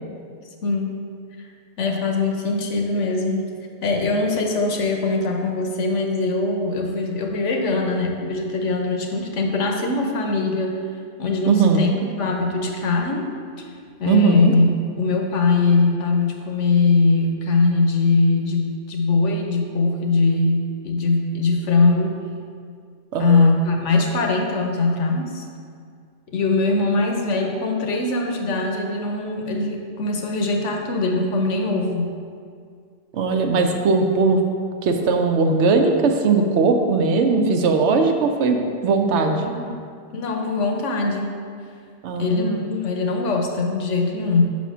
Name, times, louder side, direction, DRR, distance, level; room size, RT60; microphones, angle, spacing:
voice 1, 0.6-0.9 1.4-1.5 1.8-3.5 3.8-10.8 11.2-13.3 14.0-14.7 15.0-22.2 23.2-25.4 26.3-32.1 39.4-39.8 40.1-41.3 42.1-44.4, left 3 dB, 80° left, 2 dB, 1.1 m, -21 dB
voice 2, 11.5-11.9 14.1-14.5 23.1-23.4 33.1-34.4 34.8-39.4 42.0-42.6, right 4 dB, 70° right, 4 dB, 0.9 m, -19 dB
5.6 x 4.2 x 6.1 m, 2.2 s
omnidirectional pair, 1.2 m